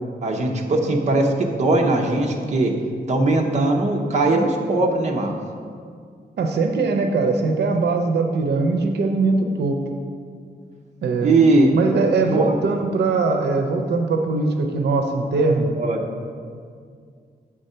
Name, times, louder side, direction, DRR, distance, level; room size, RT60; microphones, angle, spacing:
voice 1, 0.2-2.7 3.1-5.3 11.2-11.7 12.3-12.5 15.8-16.0, right 2 dB, 45° right, 1 dB, 0.7 m, -19 dB
voice 2, 6.4-9.8 11.0-11.4 11.7-15.8, right 3 dB, 90° right, 4 dB, 0.6 m, -21 dB
7.6 x 3.6 x 5.5 m, 2.2 s
wide cardioid pair, 170°, 17 cm